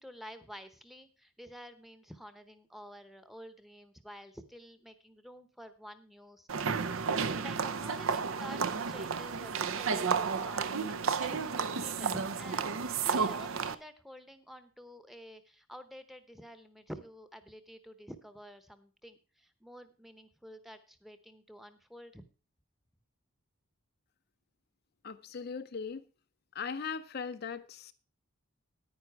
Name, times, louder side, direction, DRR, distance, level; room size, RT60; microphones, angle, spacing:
voice 1, 0.0-6.5 7.1-22.2, equal, ahead, 0.8 m, -50 dB
sound 1, 6.5-13.7, right 5 dB, 70° right, 0.6 m, -32 dB
voice 2, 25.0-26.0 26.5-27.9, left 5 dB, 45° left, 0.5 m, -39 dB
9.9 x 9.7 x 4.6 m
head